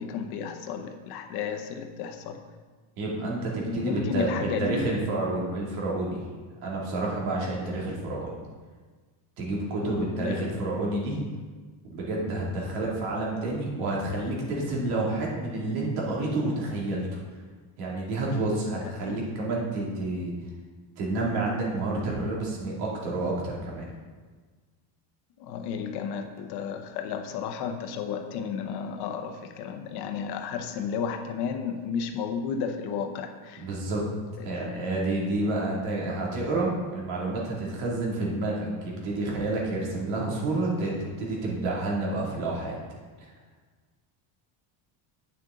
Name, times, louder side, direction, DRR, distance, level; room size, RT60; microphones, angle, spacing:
voice 1, 0.0-2.4 3.6-4.9 9.8-10.4 19.0-19.2 25.4-33.6, left 6 dB, 55° left, 7 dB, 0.8 m, -33 dB
voice 2, 3.0-6.2 6.6-8.4 9.4-11.2 11.8-17.1 17.8-20.3 21.0-23.9 33.6-34.0 34.4-42.8 43.2-43.3, right 2 dB, 85° right, -3 dB, 2.8 m, -29 dB
9.0 x 6.6 x 3.8 m, 1.4 s
cardioid pair, 165°, 48 cm